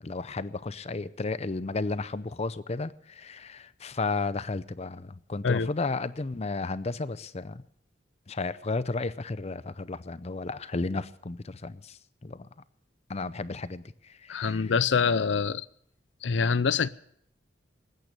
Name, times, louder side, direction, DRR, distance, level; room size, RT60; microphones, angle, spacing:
voice 1, 0.0-7.6 8.3-12.5 13.1-14.7, left 3 dB, 35° left, 0.6 m, -33 dB
voice 2, 14.3-15.7 16.2-16.9, left 5 dB, 85° left, 0.6 m, -25 dB
20.0 x 9.4 x 6.7 m
head